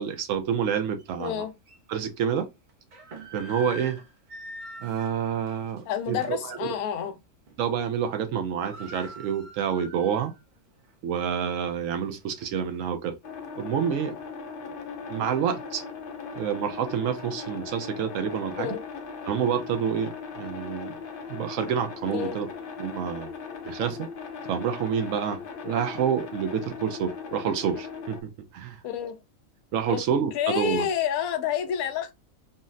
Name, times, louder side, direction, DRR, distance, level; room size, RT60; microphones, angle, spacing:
voice 1, 0.0-1.5 1.9-2.5 3.3-4.0 4.8-5.8 6.1-6.7 7.6-10.3 11.0-13.2 13.6-14.2 15.1-15.8 16.3-18.8 19.3-21.0 21.3-22.5 22.8-23.3 23.6-24.1 24.4-28.8 29.7-30.9, right 7 dB, 70° right, 0.9 m, -28 dB
sound 1, 1.0-1.1 1.7-1.8 2.7-6.5 6.9-7.1 7.5-7.9 8.1-8.2 8.4-10.4 10.8-10.9 11.5-12.8, right 1 dB, 50° right, 0.6 m, -44 dB
voice 2, 1.2-1.5 5.9-7.2 18.5-18.8 22.1-22.3 28.8-29.2 29.9-30.0 30.3-32.1, left 9 dB, 90° left, 1.0 m, -28 dB
sound 2, 13.2-28.2, left 5 dB, 55° left, 0.6 m, -39 dB
3.9 x 2.0 x 2.4 m
omnidirectional pair, 1.5 m